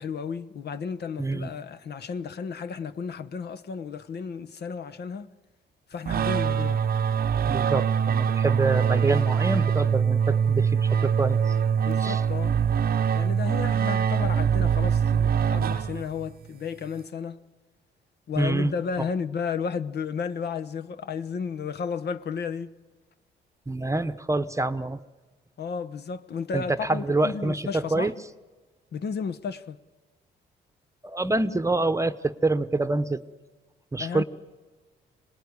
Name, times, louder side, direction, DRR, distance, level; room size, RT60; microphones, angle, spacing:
voice 1, 0.0-5.3 5.9-6.8 11.8-12.6 13.2-17.4 18.3-22.7 25.6-28.1 28.9-29.8 34.0-34.2, left 6 dB, 55° left, 1.1 m, -33 dB
voice 2, 1.2-1.5 7.5-11.4 12.0-12.2 18.4-18.7 23.7-25.0 26.5-28.1 31.0-33.2 33.9-34.2, right 2 dB, 15° right, 1.0 m, -26 dB
sound 1, 6.1-16.3, right 7 dB, 50° right, 0.8 m, -23 dB
25.5 x 19.5 x 9.7 m
cardioid pair, 90°, 20 cm